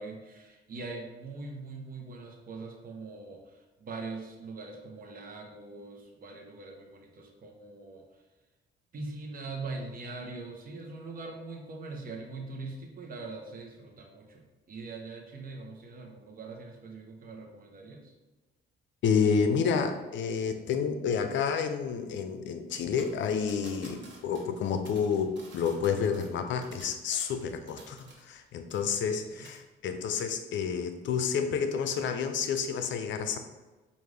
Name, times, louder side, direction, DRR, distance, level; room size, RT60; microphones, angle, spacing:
voice 1, 0.0-8.0 8.9-18.1 29.1-29.5, right 3 dB, 45° right, 1 dB, 0.8 m, -42 dB
voice 2, 19.0-33.4, left 6 dB, 70° left, 7 dB, 0.5 m, -29 dB
sound 1, 23.0-28.4 28.7-29.2 29.5-29.6, right 3 dB, 65° right, 1.1 m, -53 dB
5.0 x 2.5 x 3.3 m, 1.2 s
cardioid pair, 90°, 20 cm